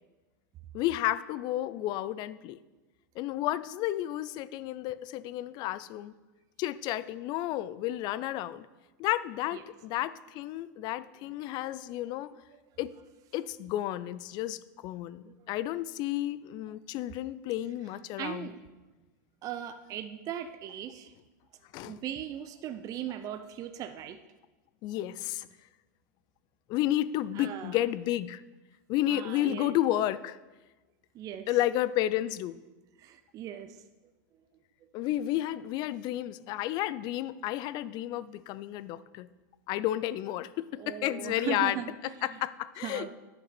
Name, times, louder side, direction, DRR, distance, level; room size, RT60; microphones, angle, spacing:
voice 1, 0.7-2.6 3.2-6.1 6.6-8.7 9.0-12.3 12.8-12.9 13.3-18.5 21.7-22.0 24.8-25.5 26.7-28.4 28.9-30.4 31.5-32.6 34.9-39.3 39.7-43.1, left 14 dB, 45° left, 17 dB, 0.4 m, -32 dB
voice 2, 18.2-18.6 19.4-21.2 21.8-24.2 27.3-27.8 29.1-29.7 31.1-31.6 33.0-33.8 40.8-42.4 42.8-43.1, right 10 dB, 35° right, 9 dB, 0.5 m, -39 dB
10.0 x 5.9 x 4.3 m, 1.2 s
hypercardioid pair, 115°, 10 cm